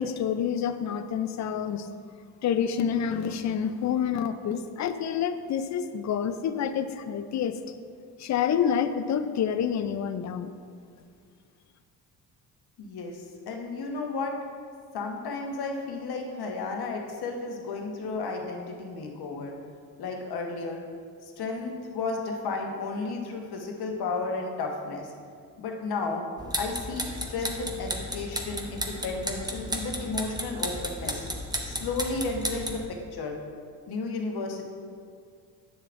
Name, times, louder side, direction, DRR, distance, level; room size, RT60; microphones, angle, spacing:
voice 1, 0.0-1.9 2.4-7.5 8.2-10.5, left 8 dB, 45° left, 10 dB, 0.5 m, -28 dB
voice 2, 12.8-14.3 14.9-19.5 20.0-20.8 21.4-25.1 25.6-26.2 26.6-31.2 31.6-33.4 33.9-34.6, left 3 dB, 65° left, 1 dB, 1.3 m, -33 dB
sound 1, 26.4-32.9, equal, 10° right, 0.9 m, -34 dB
10.5 x 6.7 x 2.6 m, 2.2 s
supercardioid pair, 75°, 42 cm